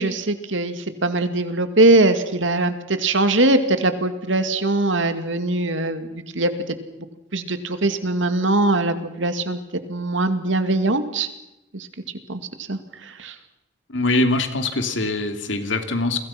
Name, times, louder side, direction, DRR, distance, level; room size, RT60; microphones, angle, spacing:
voice 1, 0.0-6.5 7.3-9.6 9.9-11.3 11.7-11.9 12.3-12.4 12.7-12.8 13.2-13.3, right 2 dB, 90° right, 9 dB, 2.3 m, -21 dB
voice 2, 13.9-16.2, left 2 dB, 80° left, 6 dB, 2.9 m, -23 dB
30.0 x 23.0 x 6.0 m, 0.90 s
head